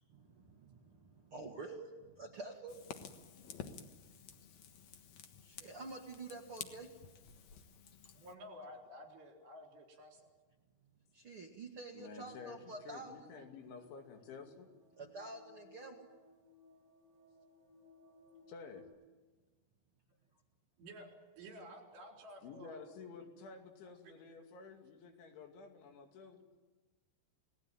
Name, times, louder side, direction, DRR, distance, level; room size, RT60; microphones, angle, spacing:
voice 1, 0.0-2.8 5.4-6.9 11.1-13.3 15.0-16.0, right 3 dB, 55° right, 2 dB, 1.5 m, -48 dB
Fire, 2.7-8.3, left 7 dB, 65° left, 1.8 m, -52 dB
voice 2, 8.1-10.3 20.8-21.1 21.4-22.8 24.0-24.1, equal, 70° right, 1 dB, 6.4 m, -52 dB
voice 3, 11.9-14.7 18.5-18.8 22.4-26.4, left 5 dB, 85° left, 4 dB, 4.8 m, -51 dB
sound 1, 13.6-18.8, left 3 dB, 15° right, 6.2 m, -64 dB
29.5 x 19.0 x 9.1 m, 1.3 s
omnidirectional pair, 5.2 m